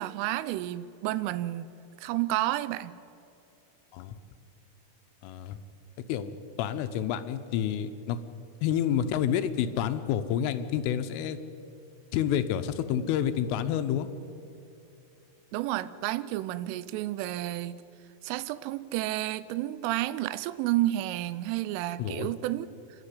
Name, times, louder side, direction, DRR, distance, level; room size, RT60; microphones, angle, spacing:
voice 1, 0.0-1.7 2.0-2.9 15.5-17.8 18.2-22.7, right 15 dB, 85° right, 16 dB, 3.2 m, -31 dB
voice 2, 5.2-5.6 6.1-6.3 6.6-8.2 8.6-11.4 12.1-14.1 22.0-22.3, left 9 dB, 85° left, 10 dB, 3.5 m, -29 dB
27.5 x 12.0 x 9.9 m, 2.7 s
omnidirectional pair, 5.6 m